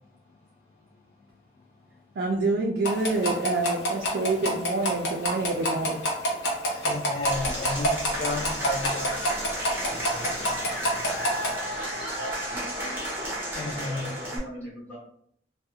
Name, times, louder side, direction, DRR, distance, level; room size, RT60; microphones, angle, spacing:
voice 1, 2.2-6.0, right 3 dB, 65° right, -1 dB, 0.3 m, -27 dB
sound 1, 2.9-11.6, equal, 90° left, 0.7 m, -28 dB
voice 2, 6.7-9.2 13.6-14.3, left 2 dB, 35° left, -4 dB, 0.3 m, -32 dB
Applause / Crowd, 7.2-14.4, equal, 10° right, 0.6 m, -33 dB
voice 3, 12.1-13.0 13.8-15.0, right 1 dB, 10° left, -9 dB, 1.0 m, -40 dB
2.3 x 2.1 x 2.7 m, 0.66 s
head